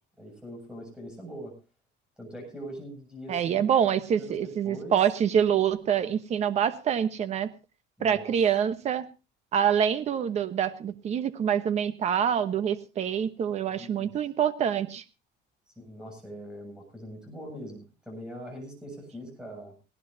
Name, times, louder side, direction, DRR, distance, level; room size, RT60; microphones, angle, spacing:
voice 1, 0.2-1.6 2.2-3.6 4.2-5.0 8.0-8.4 13.7-14.1 15.7-19.7, equal, 5° right, 2 dB, 7.3 m, -42 dB
voice 2, 3.3-7.5 8.0-9.0 9.5-15.0, right 8 dB, 35° right, 11 dB, 1.1 m, -26 dB
19.0 x 17.0 x 2.8 m, 0.31 s
cardioid pair, 170°, 19 cm